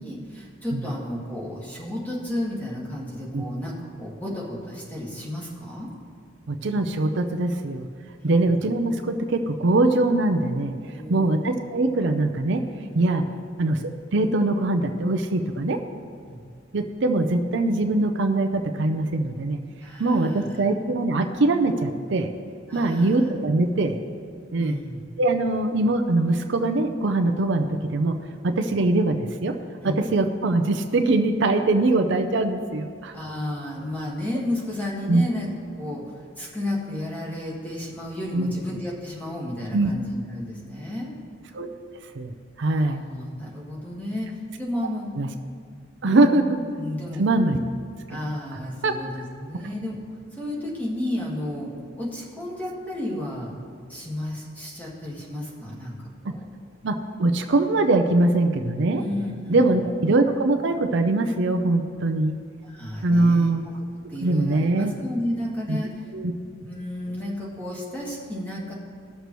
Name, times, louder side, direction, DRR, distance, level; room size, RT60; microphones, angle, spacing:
voice 1, 0.0-5.9 8.2-8.5 10.9-11.5 16.3-16.4 19.8-20.6 22.7-23.2 24.6-25.0 29.8-30.0 33.1-41.1 42.6-45.1 46.0-46.3 46.8-47.2 48.1-53.6 53.9-56.4 59.0-59.7 62.6-63.5 64.1-66.1 66.6-68.7, left 1 dB, 10° left, -4 dB, 1.8 m, -32 dB
voice 2, 6.5-7.9 8.2-10.7 11.1-12.6 12.9-13.2 13.6-15.8 16.7-19.6 20.0-22.3 22.7-24.0 24.5-24.8 25.2-28.1 28.4-29.1 29.4-29.5 29.8-33.1 35.1-35.2 38.3-38.5 39.7-39.9 41.5-41.7 42.2-43.0 45.2-45.3 46.0-46.6 47.2-47.6 48.8-48.9 56.2-56.3 56.8-59.0 59.5-62.4 63.0-63.6 64.2-64.9 65.3-65.8 66.1-66.3, right 2 dB, 65° right, 6 dB, 0.6 m, -22 dB
17.5 x 6.7 x 3.1 m, 2.1 s
head